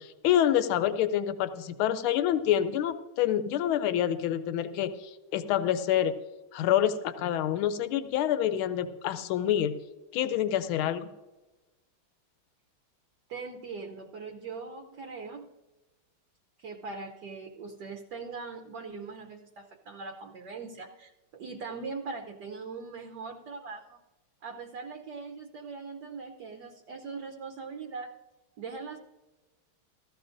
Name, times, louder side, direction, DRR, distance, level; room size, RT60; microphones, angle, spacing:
voice 1, 0.0-6.1 6.5-9.8 10.1-11.1, left 11 dB, 80° left, 10 dB, 1.5 m, -27 dB
voice 2, 13.3-15.5 16.6-24.0 24.4-28.1 28.6-29.0, right 4 dB, 60° right, 2 dB, 1.3 m, -41 dB
16.5 x 13.0 x 2.5 m, 1.1 s
omnidirectional pair, 2.3 m